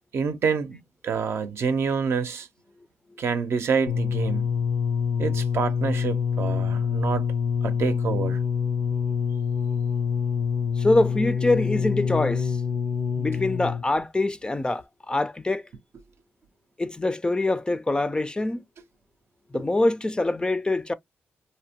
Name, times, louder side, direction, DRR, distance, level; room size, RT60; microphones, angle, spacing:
voice 1, 0.1-0.8 1.0-2.5 3.2-4.5 5.2-7.3 7.6-8.4 19.5-19.6, right 5 dB, 65° right, 0.6 m, -27 dB
sound 1, 3.9-14.0 14.8-14.9, left 6 dB, 75° left, 0.5 m, -26 dB
voice 2, 10.8-12.6 13.2-15.6 16.8-18.6 19.5-20.9, left 2 dB, 20° left, 0.3 m, -24 dB
2.7 x 2.1 x 2.8 m
cardioid pair, 70°, 5 cm